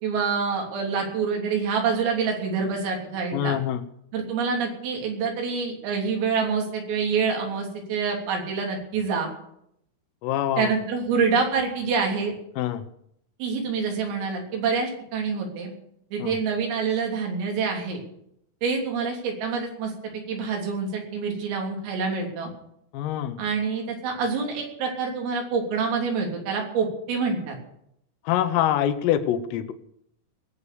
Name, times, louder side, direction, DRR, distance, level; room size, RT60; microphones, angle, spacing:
voice 1, 0.0-3.6 4.1-9.3 10.6-12.3 13.4-15.7 16.1-18.0 18.6-19.9 20.3-22.5 23.4-27.6, right 5 dB, 85° right, 1 dB, 5.9 m, -26 dB
voice 2, 3.3-3.8 10.2-10.7 12.6-12.9 16.2-16.4 22.9-23.4 28.3-29.7, left 11 dB, 90° left, 9 dB, 3.7 m, -25 dB
20.5 x 8.4 x 7.0 m, 0.74 s
omnidirectional pair, 5.8 m